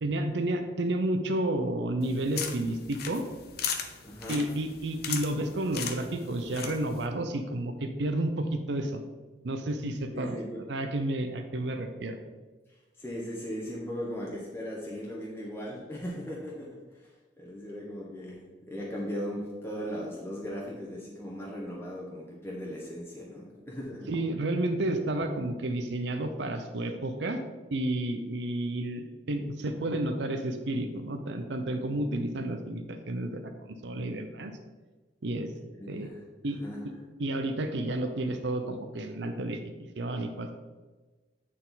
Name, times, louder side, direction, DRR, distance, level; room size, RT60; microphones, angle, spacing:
voice 1, 0.0-3.2 4.3-9.0 9.4-10.4 10.7-12.2 24.1-27.4 27.7-33.5 33.8-34.5 35.2-35.5 35.9-36.1 36.4-36.6 37.2-40.6, right 1 dB, 75° right, 6 dB, 0.6 m, -31 dB
sound 1, 2.0-7.1, left 7 dB, 60° left, 0.7 m, -38 dB
voice 2, 4.0-4.5 10.1-10.6 13.0-24.1 35.7-36.2 36.6-36.8, equal, 15° left, -4 dB, 1.0 m, -38 dB
9.1 x 4.3 x 4.0 m, 1.3 s
head